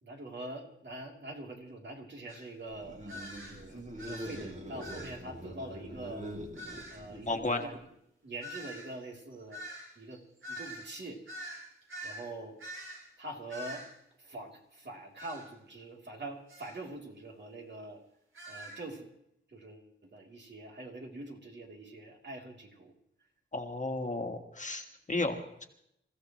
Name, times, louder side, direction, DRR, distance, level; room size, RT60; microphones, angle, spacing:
voice 1, 0.0-6.2 6.9-7.7 8.2-9.6 10.0-10.2 10.5-11.2 12.0-12.6 13.2-13.8 14.2-18.0 18.5-19.1 19.5-22.9, right 2 dB, 55° right, 0 dB, 3.1 m, -44 dB
sound 1, 2.3-2.4 3.1-3.6 4.0-4.5 4.8-5.2 6.6-7.0 8.4-12.3 12.6-13.1 13.5-13.9 15.2-15.5 16.5-16.8 18.3-18.8, equal, 80° right, 6.5 m, -44 dB
sound 2, 2.7-7.8, equal, 35° right, 2.4 m, -44 dB
voice 2, 7.3-7.6 23.5-25.6, left 2 dB, 35° left, 4 dB, 1.6 m, -33 dB
28.0 x 15.5 x 3.1 m, 0.76 s
wide cardioid pair, 120°, 21 cm